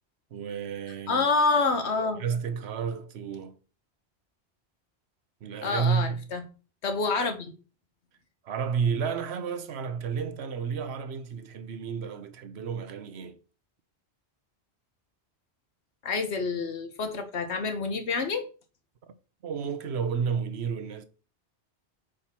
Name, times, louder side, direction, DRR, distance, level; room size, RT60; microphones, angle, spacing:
voice 1, 0.3-1.3 2.2-3.6 5.4-6.2 8.4-13.4 19.4-21.0, right 6 dB, 75° right, 1.0 m, -31 dB
voice 2, 1.1-2.2 5.6-6.4 6.8-7.5 16.0-18.5, left 4 dB, 75° left, 1.3 m, -27 dB
5.0 x 4.3 x 5.9 m
omnidirectional pair, 1.1 m